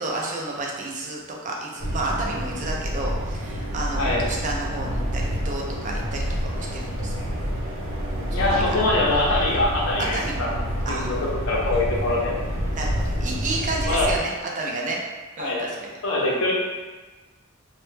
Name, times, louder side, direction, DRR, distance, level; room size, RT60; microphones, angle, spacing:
voice 1, 0.0-7.1 8.3-8.6 10.1-10.4 10.9-11.1 12.7-15.0 15.4-15.9, right 2 dB, 35° right, -1 dB, 0.4 m, -31 dB
sound 1, 1.8-14.2, equal, 80° right, 0.6 m, -28 dB
voice 2, 8.3-10.5 10.9-11.2 11.5-12.4 13.8-14.1 15.4-15.8 16.0-16.5, left 2 dB, 70° left, -3 dB, 0.6 m, -23 dB
2.1 x 2.1 x 3.1 m, 1.2 s
head